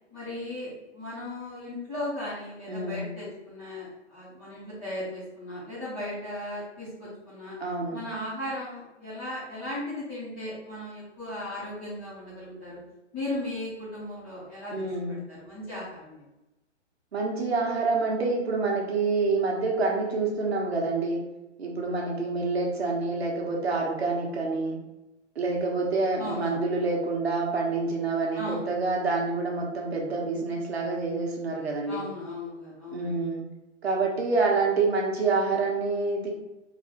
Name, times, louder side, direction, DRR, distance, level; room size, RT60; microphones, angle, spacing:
voice 1, 0.1-7.6 7.9-12.8 13.1-16.2 26.2-26.6 28.3-28.7 31.9-33.3, left 1 dB, 5° left, -15 dB, 0.4 m, -37 dB
voice 2, 2.7-3.1 7.6-8.0 14.7-15.2 17.1-21.2 21.6-24.8 25.3-32.0 32.9-33.4 33.8-36.3, right 3 dB, 60° right, -1 dB, 1.3 m, -27 dB
4.0 x 2.7 x 4.3 m, 0.98 s
figure-of-eight pair, 130°, 35 cm